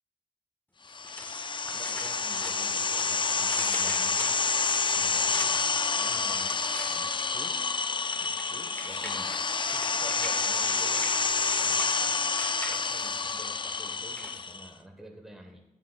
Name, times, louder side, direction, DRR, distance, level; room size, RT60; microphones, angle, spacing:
sound 1, 0.9-14.7, left 4 dB, 35° left, 0.3 m, -28 dB
sound 2, 0.9-3.0 3.3-5.7 6.4-7.5 8.0-13.1 13.7-14.4, left 1 dB, 15° left, 1.6 m, -43 dB
voice 1, 1.7-4.4 4.9-7.7 8.2-11.0 11.6-12.3 12.7-15.6, right 1 dB, 5° right, 1 dB, 1.4 m, -49 dB
9.7 x 9.5 x 2.4 m, 0.90 s
cardioid pair, 45°, 14 cm